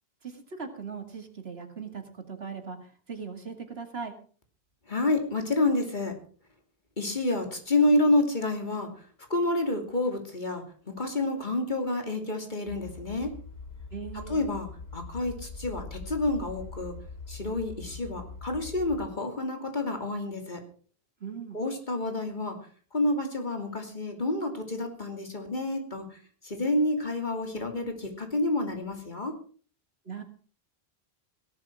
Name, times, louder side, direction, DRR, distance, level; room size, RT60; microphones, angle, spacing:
voice 1, 0.2-2.0 2.3-2.8 3.1-4.2 13.9-14.5 21.2-21.6 30.1-30.2, right 5 dB, 75° right, 5 dB, 2.5 m, -39 dB
voice 2, 4.9-6.1 7.0-8.9 9.3-13.3 14.1-16.9 17.3-20.6 21.5-22.6 22.9-26.1 26.4-29.3, left 2 dB, 50° left, 4 dB, 3.0 m, -29 dB
sound 1, 12.7-19.1, left 4 dB, 80° left, 2.6 m, -42 dB
17.0 x 12.0 x 4.8 m, 0.42 s
omnidirectional pair, 1.0 m